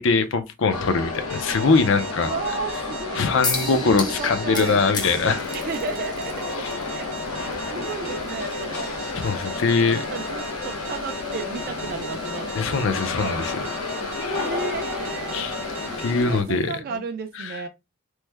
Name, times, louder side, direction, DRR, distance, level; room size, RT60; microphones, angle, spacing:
voice 1, 0.0-2.3 3.1-5.4 6.6-6.7 9.2-10.1 12.6-13.5 15.3-15.6 16.0-16.7 17.4-17.6, left 4 dB, 60° left, 0.5 m, -22 dB
sound 1, 0.7-16.4, left 3 dB, 80° left, 0.8 m, -31 dB
sound 2, 1.3-16.2, right 5 dB, 60° right, 0.7 m, -40 dB
voice 2, 2.2-3.3 3.6-4.8 5.5-6.4 6.9-7.1 7.3-8.9 9.8-13.4 14.3-15.4 16.0-17.7, right 5 dB, 45° right, 0.3 m, -34 dB
sound 3, 3.4-16.8, left 4 dB, 20° left, 0.6 m, -38 dB
3.1 x 2.1 x 3.3 m
head